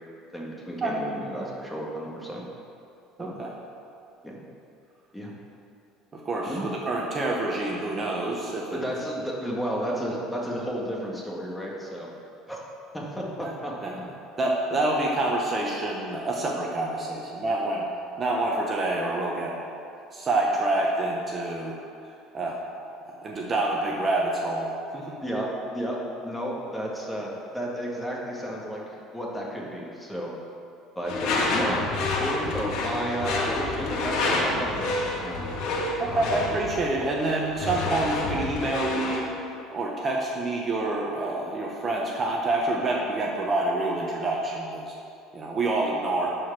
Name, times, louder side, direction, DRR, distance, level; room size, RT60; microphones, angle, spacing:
voice 1, 0.3-2.4 3.2-3.3 4.2-4.4 5.1-5.3 6.4-6.7 8.7-12.1 12.5-12.6 12.9-13.7 25.2-30.3 30.9-31.8 32.2-35.5 36.0-36.4, equal, 5° left, -3 dB, 1.8 m, -32 dB
voice 2, 3.2-3.5 6.1-8.8 13.4-13.5 13.8-13.9 14.4-17.9 18.2-19.5 20.1-21.8 22.3-22.6 23.1-25.2 36.0-39.3 39.7-44.9 45.3-46.4, right 2 dB, 30° right, -1 dB, 1.0 m, -27 dB
Door / Screech, 31.0-39.3, left 2 dB, 65° left, 1.8 m, -28 dB
11.5 x 4.9 x 6.1 m, 2.6 s
cardioid pair, 120°, 0 cm